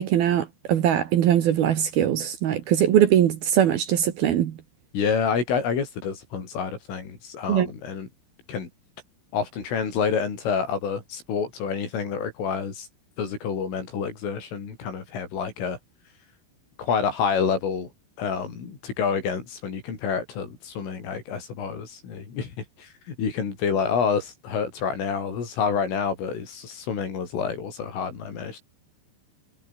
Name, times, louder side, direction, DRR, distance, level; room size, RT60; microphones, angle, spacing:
voice 1, 0.0-4.6 7.5-7.7, right 10 dB, 60° right, 2.9 m, -21 dB
voice 2, 4.9-8.1 8.5-8.7 9.3-12.9 13.2-15.8 16.8-17.9 18.2-22.9 23.2-28.6, left 6 dB, 80° left, 8.4 m, -28 dB
omnidirectional pair, 5.7 m